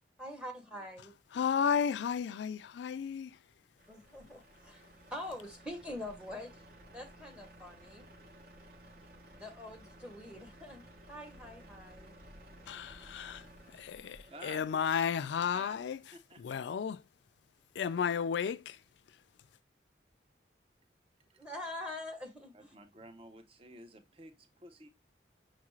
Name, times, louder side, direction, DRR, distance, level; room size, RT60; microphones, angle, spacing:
voice 1, 0.2-1.1 3.9-4.8 5.1-6.6 6.9-8.1 9.3-12.2 21.4-22.7, left 1 dB, 5° right, 0.8 m, -44 dB
voice 2, 1.3-3.4 12.7-13.4 13.7-16.0 16.4-17.0 17.8-18.8, left 7 dB, 75° left, 0.3 m, -33 dB
Truck, 3.8-15.0, right 1 dB, 50° right, 0.9 m, -56 dB
voice 3, 14.3-14.6 15.2-15.8 16.1-16.7 21.3-21.5 22.5-24.9, right 2 dB, 30° right, 0.5 m, -53 dB
6.1 x 2.4 x 3.0 m
head